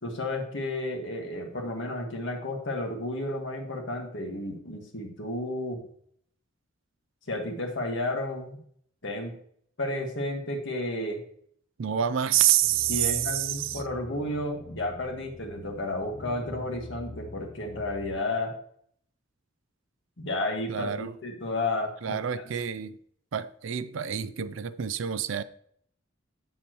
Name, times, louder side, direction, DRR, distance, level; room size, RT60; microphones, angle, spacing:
voice 1, 0.0-5.8 7.3-8.6 9.0-9.3 9.8-11.2 12.9-18.6 20.2-22.4, left 1 dB, 60° left, 1.7 m, -32 dB
voice 2, 11.8-13.8 20.7-21.1 22.0-23.0 23.3-25.4, right 11 dB, 65° right, 0.4 m, -27 dB
sound 1, 12.6-18.2, left 2 dB, 25° left, 0.8 m, -45 dB
8.3 x 7.2 x 3.0 m
head